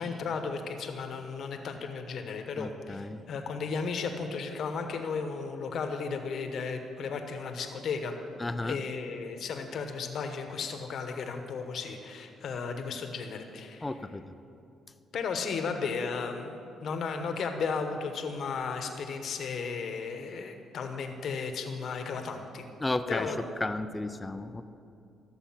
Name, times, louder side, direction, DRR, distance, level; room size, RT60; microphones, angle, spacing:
voice 1, 0.0-8.1 8.6-13.9 15.1-22.7 23.1-23.4, left 5 dB, 65° left, 6 dB, 1.1 m, -34 dB
voice 2, 2.6-3.2 8.4-8.8 13.8-14.2 22.8-23.3 23.6-24.6, left 2 dB, 20° left, 10 dB, 0.5 m, -33 dB
13.5 x 6.8 x 5.8 m, 2.6 s
cardioid pair, 90°, 0 cm